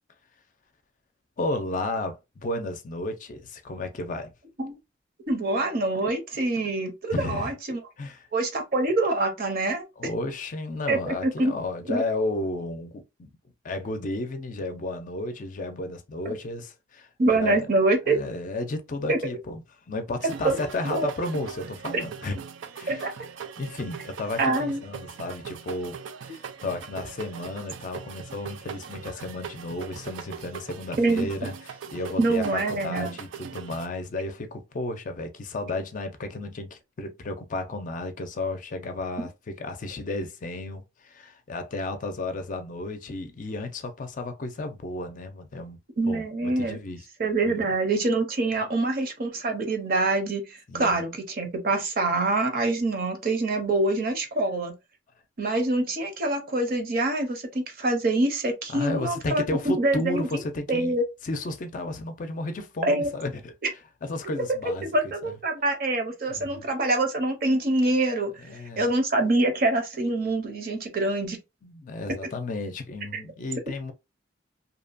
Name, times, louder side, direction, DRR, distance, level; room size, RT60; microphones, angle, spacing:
voice 1, 1.4-4.3 7.1-7.5 8.0-8.3 10.0-13.3 13.6-17.7 18.1-19.6 19.9-22.4 22.7-23.1 23.6-45.8 46.0-47.0 47.5-47.6 50.7-51.0 58.7-63.5 64.1-64.9 65.2-65.3 66.3-66.7 68.4-68.9 71.6-73.9, left 2 dB, 45° left, 0.5 m, -33 dB
voice 2, 5.3-7.8 8.3-9.8 10.9-11.5 11.9-12.0 17.2-18.2 19.1-19.2 20.4-20.5 20.9-21.1 22.9-23.1 24.4-24.8 31.0-31.3 32.2-33.1 46.0-46.8 47.2-54.7 55.4-60.3 60.7-61.0 62.8-63.1 64.8-68.3 68.8-71.4, right 2 dB, 50° right, 0.7 m, -25 dB
sound 1, 20.2-33.9, right 6 dB, 85° right, 0.4 m, -40 dB
2.7 x 2.2 x 2.5 m
head